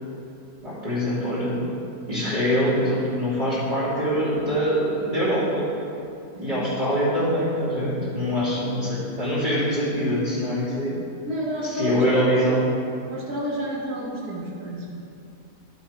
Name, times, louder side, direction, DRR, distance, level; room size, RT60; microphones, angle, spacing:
voice 1, 0.6-1.7 2.1-5.7 6.4-10.9 11.8-12.6, equal, 25° right, -13 dB, 2.6 m, -24 dB
voice 2, 8.5-8.8 11.3-12.3 13.1-15.1, equal, 70° right, -4 dB, 2.1 m, -31 dB
11.5 x 8.2 x 3.3 m, 2.6 s
omnidirectional pair, 1.7 m